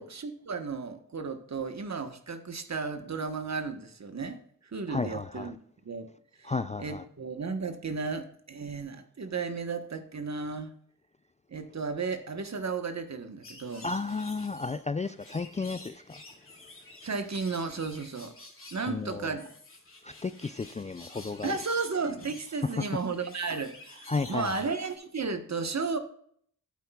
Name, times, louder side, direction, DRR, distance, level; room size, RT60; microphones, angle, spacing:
voice 1, 0.0-5.6 5.8-6.1 6.4-6.5 6.8-10.7 11.5-13.9 17.0-18.4 18.7-19.5 21.4-26.0, right 4 dB, 50° right, 1.2 m, -34 dB
voice 2, 4.9-5.5 6.4-7.0 13.8-16.2 18.9-19.4 20.0-21.5 22.6-23.0 24.1-24.5, left 4 dB, 20° left, 0.3 m, -33 dB
sound 1, 13.4-25.0, left 2 dB, 35° left, 2.4 m, -50 dB
11.5 x 8.4 x 2.3 m
cardioid pair, 60°, 35 cm